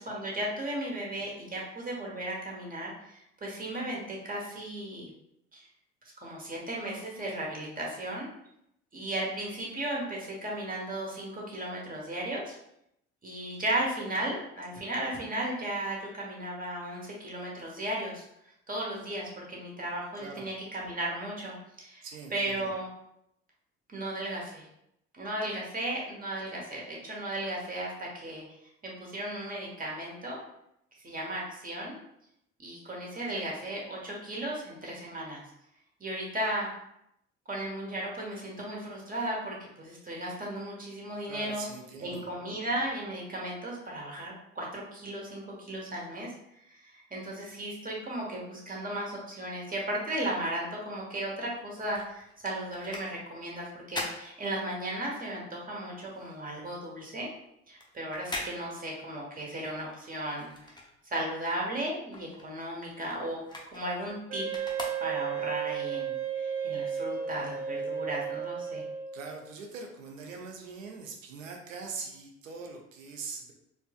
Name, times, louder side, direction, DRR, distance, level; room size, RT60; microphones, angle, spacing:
voice 1, 0.0-5.1 5.5-5.6 6.2-8.3 8.9-12.6 13.2-18.2 18.7-22.1 22.3-22.9 23.9-24.7 25.1-28.4 28.8-30.4 31.0-32.0 32.6-35.4 36.0-36.7 37.5-41.7 42.0-46.3 46.7-57.3 57.7-60.5 61.0-63.4 63.7-64.4 65.0-68.8, right 1 dB, 20° right, -2 dB, 1.3 m, -35 dB
voice 2, 20.2-20.5 22.0-22.7 41.2-42.3 69.1-73.5, right 4 dB, 85° right, 2 dB, 0.6 m, -42 dB
sound 1, 51.4-55.1 55.5-61.5 61.8-65.6 66.1-66.2, left 2 dB, 10° left, 0.7 m, -43 dB
Wind instrument woodwind instrument, 64.3-69.4, right 7 dB, 40° right, 1.0 m, -34 dB
4.4 x 2.5 x 2.3 m, 0.77 s
figure-of-eight pair, 55°, 38 cm